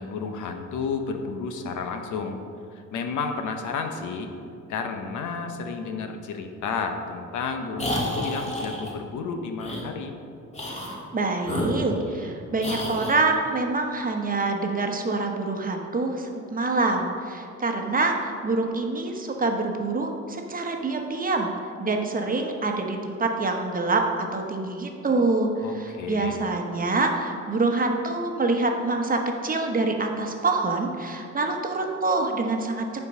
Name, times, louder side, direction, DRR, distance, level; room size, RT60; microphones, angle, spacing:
voice 1, 0.0-2.4 2.7-4.3 4.7-10.2 25.6-26.4, left 5 dB, 80° left, 5 dB, 0.9 m, -31 dB
sound 1, 7.8-8.9 9.6-9.8 10.5-11.0 11.4-12.3 12.6-13.2, left 1 dB, 20° left, 1.7 m, -30 dB
voice 2, 11.1-21.5 21.8-32.9, right 3 dB, 30° right, 3 dB, 1.1 m, -26 dB
9.8 x 4.5 x 5.4 m, 2.4 s
cardioid pair, 90°, 30 cm